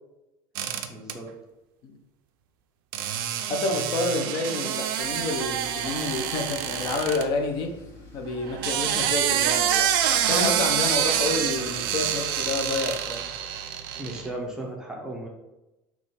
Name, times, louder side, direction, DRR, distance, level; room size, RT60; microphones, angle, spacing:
sound 1, 0.6-1.1 2.9-7.2 8.4-14.3, right 10 dB, 80° right, 0.4 m, -26 dB
voice 1, 0.9-1.3 14.0-15.3, right 1 dB, 5° right, -1 dB, 0.5 m, -35 dB
voice 2, 3.5-7.7 8.1-13.2, left 3 dB, 40° left, 4 dB, 0.5 m, -29 dB
Tools, 5.0-14.5, left 2 dB, 20° left, 0.9 m, -47 dB
3.5 x 3.0 x 4.1 m, 0.96 s
supercardioid pair, 165°, 12 cm